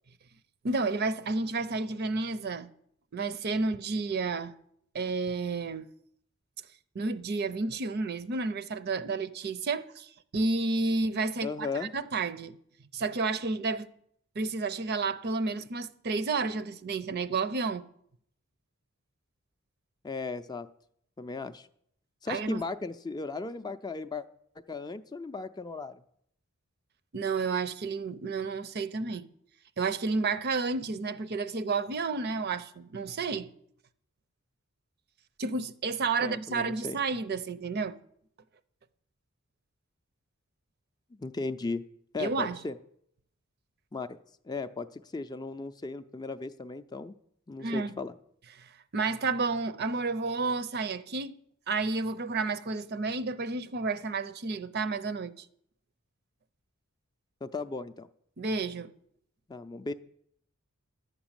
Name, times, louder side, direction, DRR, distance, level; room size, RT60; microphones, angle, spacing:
voice 1, 0.6-2.7 3.1-4.5 4.9-5.9 6.9-12.6 12.9-13.9 14.4-17.8 22.3-22.6 27.1-29.3 29.8-33.5 35.4-38.0 42.2-42.6 47.6-47.9 48.6-51.3 51.7-55.4 58.4-58.9, right 3 dB, 50° right, 0.6 m, -31 dB
voice 2, 11.4-11.9 20.0-20.7 21.2-21.7 22.2-24.3 24.7-26.0 36.2-37.0 41.2-41.8 42.1-42.7 43.9-44.2 44.4-47.1 47.5-48.1 57.4-58.1 59.5-59.9, left 3 dB, 20° left, 0.4 m, -36 dB
12.0 x 6.0 x 8.9 m
head